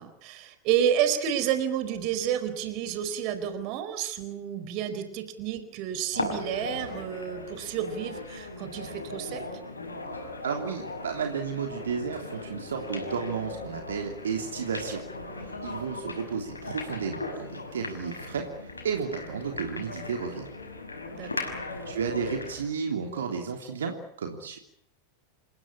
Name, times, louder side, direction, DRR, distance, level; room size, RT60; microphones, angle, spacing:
voice 1, 0.0-9.4 21.1-21.6, right 9 dB, 40° right, 10 dB, 4.3 m, -30 dB
sound 1, 6.1-22.6, left 2 dB, 80° left, 5.9 m, -38 dB
voice 2, 10.4-15.0 15.4-20.5 21.8-24.6, right 6 dB, 65° right, 3 dB, 3.2 m, -33 dB
28.5 x 16.5 x 9.9 m, 0.72 s
figure-of-eight pair, 90°, 0 cm